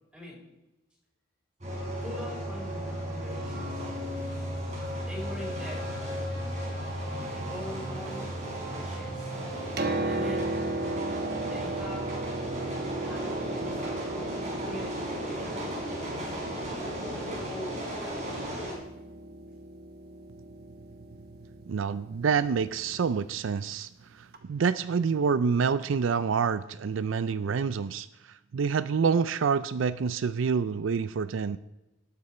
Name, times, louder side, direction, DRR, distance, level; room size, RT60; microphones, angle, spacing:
sound 1, 1.6-18.7, equal, 35° right, 4.3 m, -35 dB
voice 1, 2.0-3.9 5.0-5.9 7.2-9.3 10.1-10.5 11.4-12.1 12.7-16.8 17.4-18.8, left 1 dB, 5° right, -4 dB, 4.3 m, -44 dB
Piano, 9.5-23.2 24.3-24.4, right 2 dB, 50° right, 1.1 m, -36 dB
voice 2, 21.7-23.9 24.1-31.6, right 6 dB, 75° right, 14 dB, 0.4 m, -27 dB
19.0 x 6.8 x 4.3 m, 0.97 s
head